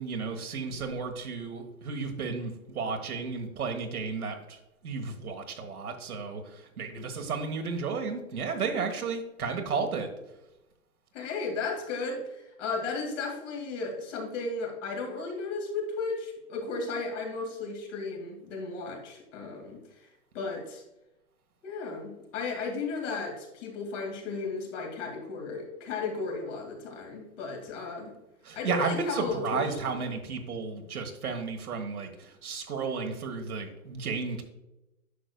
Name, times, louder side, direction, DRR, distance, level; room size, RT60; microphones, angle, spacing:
voice 1, 0.0-10.1 28.4-34.4, right 5 dB, 85° right, 5 dB, 1.5 m, -33 dB
voice 2, 11.1-20.1 20.3-20.8 21.6-28.1 28.6-29.6 30.0-30.1, left 4 dB, 55° left, 1 dB, 2.4 m, -34 dB
10.0 x 6.3 x 2.2 m, 0.94 s
hypercardioid pair, 135°, 43 cm